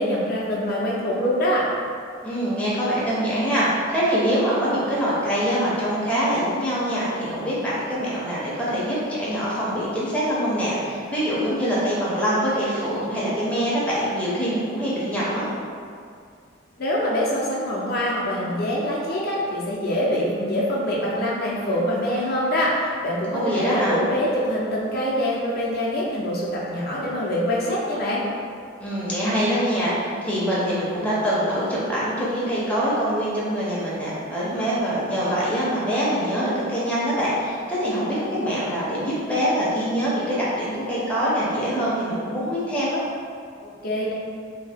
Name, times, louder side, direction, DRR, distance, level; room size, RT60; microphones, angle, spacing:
voice 1, 0.0-1.7 16.8-28.3 43.6-44.1, equal, 50° left, -5 dB, 0.5 m, -24 dB
voice 2, 2.2-15.5 23.3-24.1 28.8-43.0, equal, 5° left, -9 dB, 0.6 m, -24 dB
2.7 x 2.6 x 3.4 m, 2.3 s
head